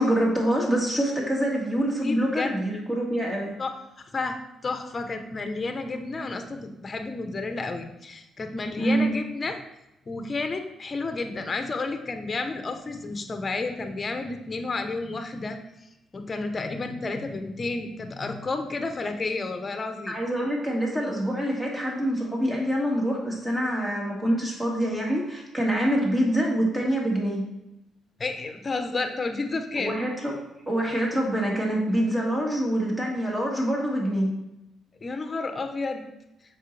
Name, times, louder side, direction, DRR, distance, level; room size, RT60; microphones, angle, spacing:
voice 1, 0.0-3.6 8.8-9.1 20.1-27.4 29.8-34.3, right 1 dB, 15° right, -2 dB, 2.2 m, -25 dB
voice 2, 2.0-2.5 3.6-3.7 4.1-9.6 10.1-15.6 16.1-20.2 28.2-29.9 35.0-36.1, left 3 dB, 35° left, 6 dB, 0.9 m, -31 dB
7.3 x 5.6 x 3.3 m, 0.92 s
cardioid pair, 90°, 0 cm